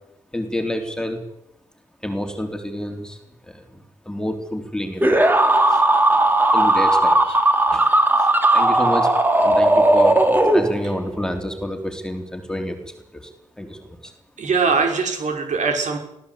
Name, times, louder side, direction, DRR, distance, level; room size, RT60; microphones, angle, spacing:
voice 1, 0.3-1.2 2.0-5.2 5.7-5.8 6.5-7.4 7.7-10.2 10.5-13.3 13.6-14.1, left 1 dB, 5° left, 4 dB, 3.7 m, -29 dB
sound 1, 5.0-11.1, right 1 dB, 15° right, 3.3 m, -16 dB
voice 2, 14.4-16.0, right 4 dB, 65° right, 3 dB, 5.8 m, -21 dB
22.5 x 16.0 x 8.6 m, 0.82 s
cardioid pair, 95°, 14 cm